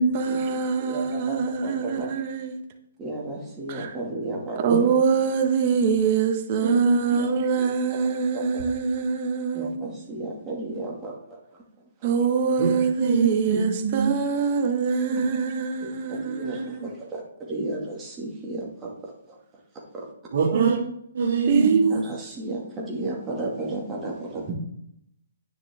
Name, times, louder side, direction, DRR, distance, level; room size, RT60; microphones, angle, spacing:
voice 1, 0.1-2.6 3.7-3.9 4.6-9.9 12.0-16.9 20.5-20.8 21.5-22.0, right 6 dB, 35° right, 1.5 m, -24 dB
voice 2, 0.8-1.4 1.6-2.1 3.0-4.7 6.7-6.8 7.2-7.3 7.6-7.7 8.3-8.5 9.5-12.1 15.8-19.4 19.9-20.1 21.9-24.5, right 2 dB, 15° right, 2.2 m, -34 dB
voice 3, 6.6-7.3 12.6-12.7 13.0-14.1 15.1-15.4 20.3-20.7 21.1-21.9, right 4 dB, 60° right, 3.3 m, -23 dB
9.9 x 9.6 x 3.7 m
hypercardioid pair, 155°, 0 cm